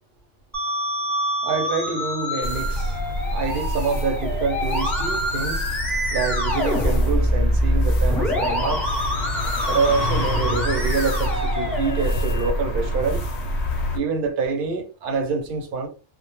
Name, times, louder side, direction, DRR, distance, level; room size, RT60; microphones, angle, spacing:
Musical instrument, 0.5-12.5, equal, ahead, 0.5 m, -25 dB
voice 1, 1.4-3.0 3.3-5.6 6.1-8.8 9.6-13.2 13.9-15.9, right 4 dB, 55° right, 0.7 m, -26 dB
sound 1, 2.4-14.0, left 1 dB, 65° left, 0.8 m, -27 dB
2.1 x 2.1 x 2.9 m
omnidirectional pair, 1.3 m